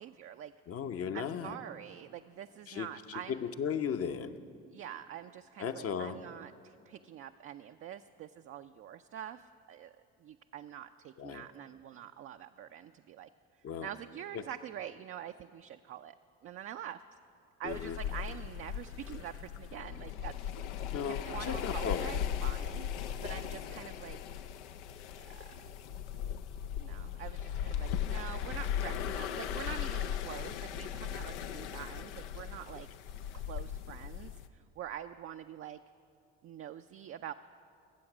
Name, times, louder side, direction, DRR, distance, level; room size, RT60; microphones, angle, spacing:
voice 1, 0.0-0.5 1.1-3.5 4.7-9.9 10.2-13.3 13.8-16.2 16.4-17.0 17.6-20.5 20.8-20.9 21.2-24.2 25.2-25.5 26.8-32.9 33.3-35.8 36.4-37.3, right 10 dB, 40° right, 7 dB, 0.4 m, -45 dB
voice 2, 0.7-1.6 2.7-2.9 3.3-4.4 5.6-6.2 11.2-11.5 13.6-13.9 14.3-14.4 17.6-18.0 20.9-22.1 27.9-28.0, left 7 dB, 45° left, 8 dB, 0.8 m, -36 dB
sound 1, 17.7-34.5, left 9 dB, 85° left, 0.6 m, -38 dB
20.0 x 7.7 x 6.1 m, 2.4 s
hypercardioid pair, 60°, 34 cm